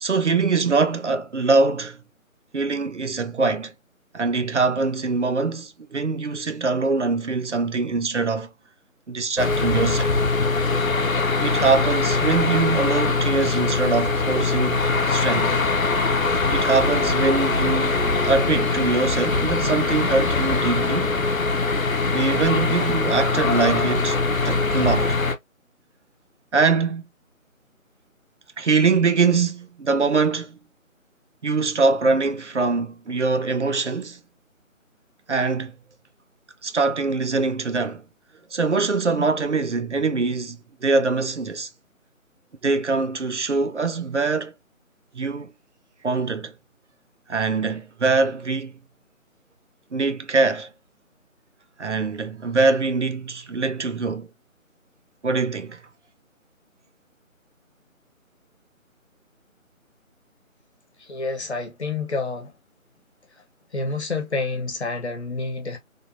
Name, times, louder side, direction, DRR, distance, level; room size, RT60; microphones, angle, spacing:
voice 1, 0.0-2.0 2.5-3.7 4.1-8.5 9.1-10.2 11.4-15.5 16.5-18.0 18.2-21.1 22.1-25.2 26.5-27.0 28.6-30.6 31.4-34.2 35.3-35.8 36.6-38.0 38.5-41.7 42.6-44.5 45.1-45.5 46.0-46.5 47.3-48.8 49.9-50.7 51.8-54.3 55.2-55.8, right 4 dB, 55° right, 0.7 m, -23 dB
sound 1, 9.4-25.3, left 3 dB, 75° left, 0.9 m, -22 dB
voice 2, 61.0-62.5 63.7-65.8, left 3 dB, 50° left, 1.1 m, -28 dB
3.4 x 2.8 x 2.6 m
figure-of-eight pair, 155°, 42 cm